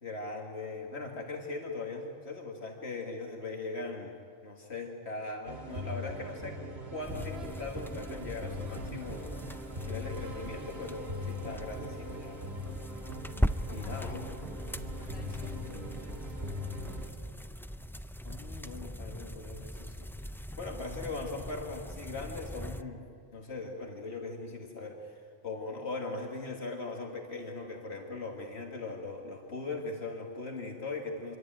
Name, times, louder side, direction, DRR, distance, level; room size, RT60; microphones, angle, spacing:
voice 1, 0.0-4.1 4.4-6.6 6.9-12.4 13.7-14.1 15.4-15.7 18.2-20.1 20.6-31.4, left 3 dB, 75° left, 1 dB, 2.3 m, -40 dB
sound 1, 5.5-17.1, left 1 dB, 70° right, 2.4 m, -41 dB
sound 2, 7.0-22.8, equal, 5° left, 0.4 m, -40 dB
voice 2, 13.7-14.6 14.9-17.3, left 1 dB, 45° left, 0 dB, 3.2 m, -53 dB
25.5 x 23.0 x 9.0 m, 2.4 s
omnidirectional pair, 1.1 m